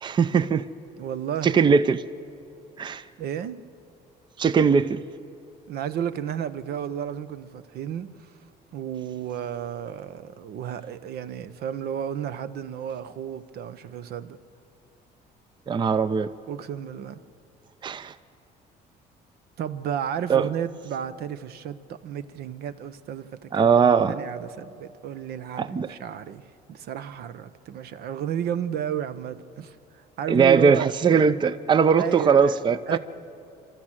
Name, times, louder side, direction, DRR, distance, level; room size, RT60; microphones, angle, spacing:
voice 1, 0.0-0.6 1.4-2.0 2.8-3.0 4.4-5.0 15.7-16.3 17.8-18.1 20.3-20.5 23.5-24.2 25.6-25.9 30.3-33.0, right 6 dB, 25° right, 0.5 m, -20 dB
voice 2, 1.0-1.6 3.2-3.6 5.7-8.3 8.7-14.4 16.5-17.2 19.6-23.6 24.1-29.8 30.2-30.9 32.0-32.6 32.9-33.0, right 9 dB, 70° right, 0.8 m, -32 dB
26.0 x 13.5 x 7.5 m
cardioid pair, 110°, 17 cm